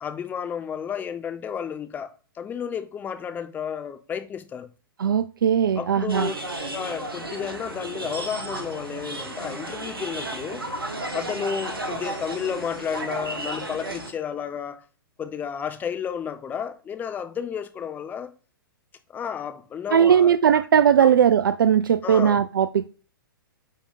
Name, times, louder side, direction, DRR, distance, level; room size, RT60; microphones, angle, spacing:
voice 1, 0.0-4.7 5.8-6.3 6.7-10.7 11.1-14.8 15.2-18.3 19.1-20.6 21.0-21.1 22.0-22.4, left 7 dB, 15° left, 0.6 m, -32 dB
voice 2, 5.0-6.3 19.9-22.9, right 8 dB, 65° right, 0.4 m, -19 dB
sound 1, 6.1-14.1, right 1 dB, 80° right, 1.2 m, -33 dB
9.2 x 3.4 x 3.9 m
figure-of-eight pair, 110°, 12 cm